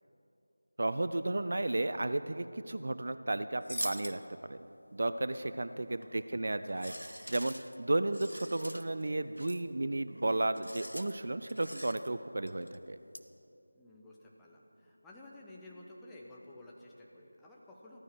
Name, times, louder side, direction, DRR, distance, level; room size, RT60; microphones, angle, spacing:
voice 1, 0.8-4.6 4.9-6.9 7.3-13.0, right 2 dB, 50° right, 12 dB, 0.5 m, -33 dB
sound 1, 3.6-4.2 6.0-6.3 6.7-9.1 9.4-9.6 10.1-10.3 10.6-11.1 11.5-12.1 12.5-12.8 13.1-13.2, equal, 90° left, 1.0 m, -43 dB
voice 2, 13.7-18.0, left 1 dB, 5° left, -4 dB, 0.9 m, -53 dB
15.0 x 14.0 x 6.1 m, 2.8 s
figure-of-eight pair, 165°, 0 cm